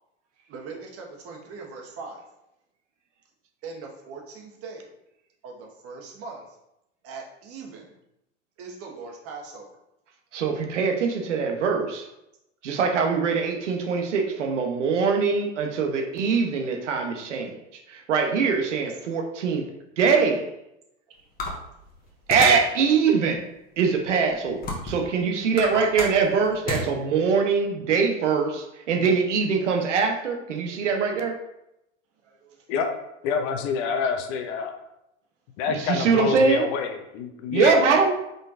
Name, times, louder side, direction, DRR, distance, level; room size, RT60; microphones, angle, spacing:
voice 1, 0.5-2.2 3.6-4.9 5.4-6.4 7.0-7.9 8.6-9.7 32.6-32.7, right 4 dB, 40° right, 0 dB, 1.3 m, -40 dB
voice 2, 10.3-12.1 12.6-17.6 17.9-19.7 20.0-20.5 22.3-23.5 23.8-31.4 35.7-36.6 37.5-38.1, right 5 dB, 80° right, 3 dB, 0.9 m, -23 dB
sound 1, 21.4-22.7 23.3-23.4 24.1-25.1 25.4-26.9, left 2 dB, 25° left, 1.3 m, -31 dB
voice 3, 33.2-34.7 35.6-38.1, left 6 dB, 50° left, 6 dB, 0.8 m, -27 dB
5.1 x 3.8 x 2.5 m, 0.85 s
hypercardioid pair, 95°, 36 cm